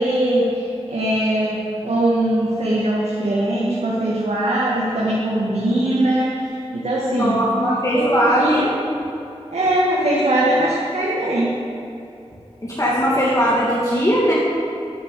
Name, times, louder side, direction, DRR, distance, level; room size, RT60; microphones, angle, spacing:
voice 1, 0.0-6.3 6.7-7.4 7.9-8.7 9.5-11.5, right 1 dB, 85° right, -6 dB, 2.1 m, -21 dB
voice 2, 7.1-8.7 12.6-14.3, equal, 30° left, -7 dB, 2.5 m, -19 dB
11.5 x 7.6 x 8.4 m, 2.6 s
wide cardioid pair, 75°, 11 cm